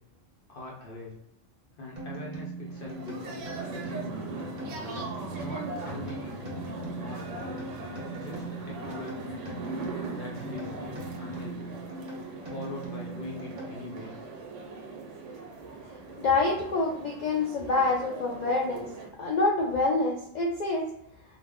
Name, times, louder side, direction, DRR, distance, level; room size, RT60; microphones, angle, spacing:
voice 1, 0.5-1.2 1.8-4.4 5.4-6.6 7.0-7.8 8.1-9.5 10.1-11.7 12.5-14.1, left 1 dB, 55° left, -3 dB, 0.7 m, -42 dB
sound 1, 2.0-14.1, right 3 dB, 45° right, 0.9 m, -41 dB
sound 2, 2.6-19.1, right 2 dB, 75° right, 1.0 m, -40 dB
voice 2, 16.2-18.9 19.2-20.9, left 3 dB, 90° left, -2 dB, 0.3 m, -26 dB
2.4 x 2.0 x 3.5 m, 0.77 s
omnidirectional pair, 1.3 m